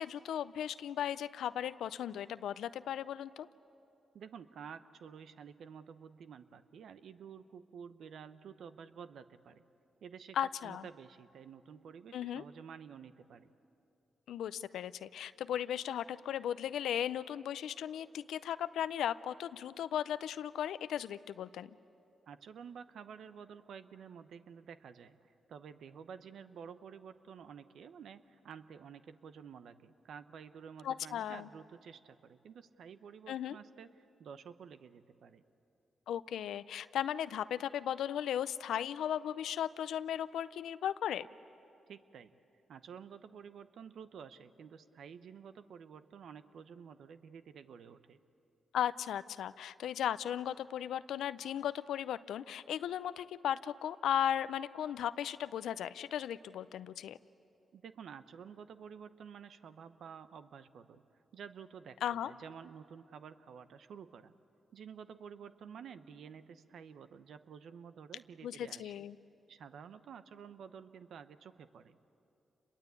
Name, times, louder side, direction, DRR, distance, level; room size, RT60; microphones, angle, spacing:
voice 1, 0.0-3.5 10.3-10.8 12.1-12.4 14.3-21.7 30.8-31.5 33.3-33.6 36.1-41.3 48.7-57.2 62.0-62.3 68.4-69.2, left 10 dB, 85° left, 15 dB, 0.5 m, -36 dB
voice 2, 4.1-9.6 10.0-13.5 22.3-35.4 41.9-42.3 42.7-48.2 57.7-61.0 61.3-64.3 64.7-69.0 69.5-72.0, right 7 dB, 75° right, 12 dB, 0.9 m, -51 dB
28.0 x 22.0 x 8.3 m, 2.9 s
cardioid pair, 60°, 0 cm